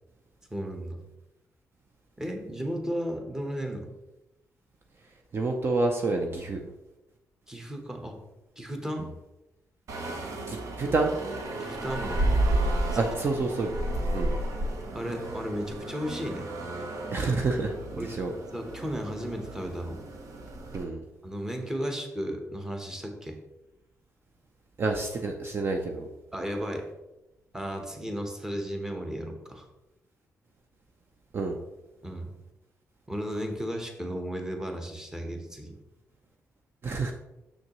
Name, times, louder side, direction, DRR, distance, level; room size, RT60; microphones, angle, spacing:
voice 1, 0.5-1.0 2.2-3.9 7.5-8.2 8.6-9.1 11.5-12.3 14.9-16.5 18.0-18.1 18.5-20.0 21.2-23.4 26.3-26.9 27.5-29.7 32.0-32.3 33.1-35.7, equal, 10° right, 3 dB, 1.0 m, -34 dB
voice 2, 5.3-6.7 10.5-11.1 12.9-13.7 14.1-14.4 17.1-18.3 20.7-21.0 24.8-26.1 31.3-31.6 36.8-37.1, right 3 dB, 40° right, 3 dB, 0.6 m, -28 dB
sound 1, 9.9-20.8, right 1 dB, 70° right, 1.0 m, -32 dB
6.5 x 6.2 x 3.0 m, 0.98 s
cardioid pair, 120°, 6 cm